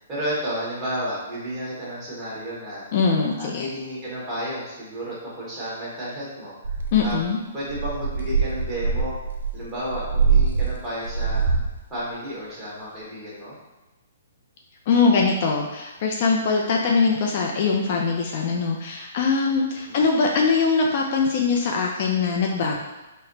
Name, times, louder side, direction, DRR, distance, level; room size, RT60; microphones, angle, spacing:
voice 1, 0.0-2.8 3.3-6.7 7.0-7.2 7.5-9.1 9.5-11.4 11.9-13.5 19.9-20.0, equal, 15° right, -9 dB, 1.3 m, -32 dB
voice 2, 2.9-3.7 6.9-7.4 14.9-22.8, left 4 dB, 40° left, 0 dB, 0.4 m, -22 dB
sound 1, 6.6-7.2 7.7-11.8, right 5 dB, 80° right, 0.6 m, -23 dB
4.1 x 2.1 x 3.9 m, 1.1 s
hypercardioid pair, 160°, 0 cm